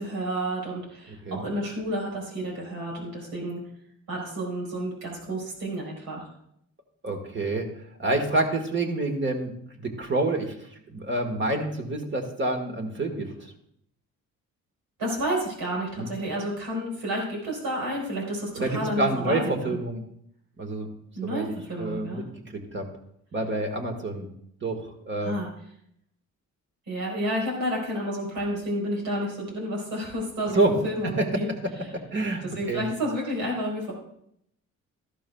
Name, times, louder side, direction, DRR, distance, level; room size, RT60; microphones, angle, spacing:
voice 1, 0.0-3.6 4.1-6.2 15.0-19.8 21.1-22.2 25.2-25.5 26.9-32.0 32.4-33.9, equal, 85° right, -2 dB, 4.4 m, -30 dB
voice 2, 7.0-7.7 8.0-10.5 10.9-13.5 16.0-16.1 18.6-20.0 20.6-20.9 21.2-22.9 23.3-24.3 24.6-25.3 30.5-30.7 31.0-31.3 31.9-32.8, right 2 dB, 40° right, 3 dB, 1.6 m, -28 dB
13.5 x 11.5 x 2.3 m, 0.73 s
cardioid pair, 90°, 30 cm